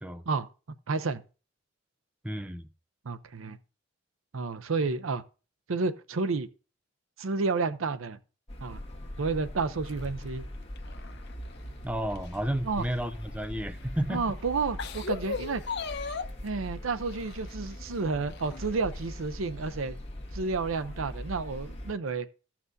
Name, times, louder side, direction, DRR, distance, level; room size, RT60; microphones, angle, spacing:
voice 1, 0.9-1.2 3.0-3.6 4.3-5.2 5.7-6.5 7.2-8.2 8.6-8.8 9.2-10.4 12.6-12.8 14.1-15.6 16.4-20.0 20.3-22.3, right 4 dB, 85° right, 0.6 m, -30 dB
voice 2, 2.2-2.7 11.8-14.2, right 1 dB, 5° right, 0.5 m, -32 dB
sound 1, 8.5-21.9, equal, 30° left, 1.7 m, -41 dB
sound 2, 9.8-11.7 12.1-13.4 14.1-14.2 14.6-16.5 17.1-17.8 18.3-19.0 19.4-19.5 20.6-20.7, left 4 dB, 60° left, 0.8 m, -38 dB
15.0 x 5.9 x 2.7 m
head